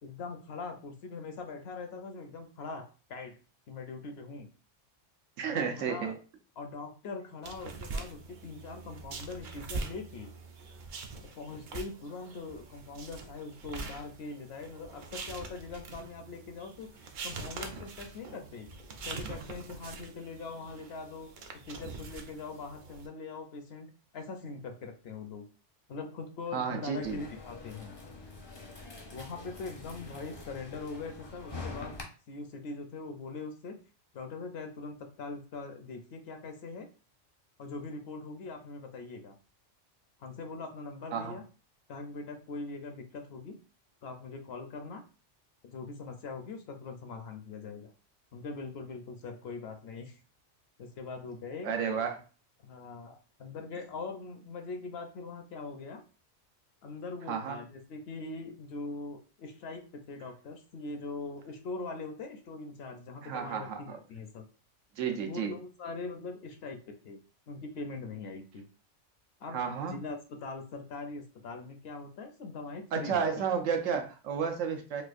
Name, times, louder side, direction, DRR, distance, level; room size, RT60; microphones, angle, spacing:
voice 1, 0.0-3.4 3.7-4.5 5.5-6.2 6.6-10.3 11.4-16.9 17.2-18.7 19.1-21.3 21.7-25.5 25.9-27.9 29.1-32.0 32.3-33.8 34.1-36.9 37.6-39.3 40.2-41.4 41.9-43.6 44.0-45.0 45.6-47.9 48.3-50.2 50.8-51.7 52.0-52.1 52.6-56.0 56.8-64.5 65.2-67.2 67.5-68.7 69.4-73.2, left 3 dB, 65° left, 5 dB, 0.7 m, -42 dB
voice 2, 5.4-6.1 26.5-27.2 41.1-41.4 51.6-52.2 57.3-57.6 63.2-64.0 65.0-65.5 69.5-70.0 72.9-75.0, right 6 dB, 85° right, 5 dB, 1.0 m, -32 dB
sound 1, 7.4-23.1, right 3 dB, 60° right, 0.5 m, -43 dB
sound 2, 27.0-32.0, left 3 dB, 35° left, 0.4 m, -45 dB
4.2 x 2.3 x 2.5 m, 0.35 s
omnidirectional pair, 1.3 m